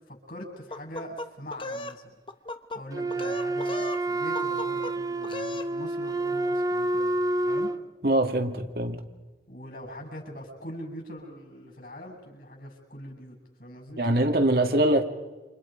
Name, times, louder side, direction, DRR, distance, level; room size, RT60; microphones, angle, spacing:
voice 1, 0.1-2.2 2.7-7.7 9.5-14.3, equal, 50° left, 2 dB, 7.5 m, -42 dB
sound 1, 0.7-2.0 2.3-2.8 3.1-4.0 4.4-4.9 5.2-5.7, left 2 dB, 30° left, 1.1 m, -36 dB
Wind instrument woodwind instrument, 2.9-7.8, right 2 dB, 20° right, 0.8 m, -28 dB
voice 2, 8.0-9.0 14.0-15.0, right 1 dB, 55° right, 5 dB, 2.2 m, -23 dB
29.5 x 27.5 x 5.2 m, 1.2 s
head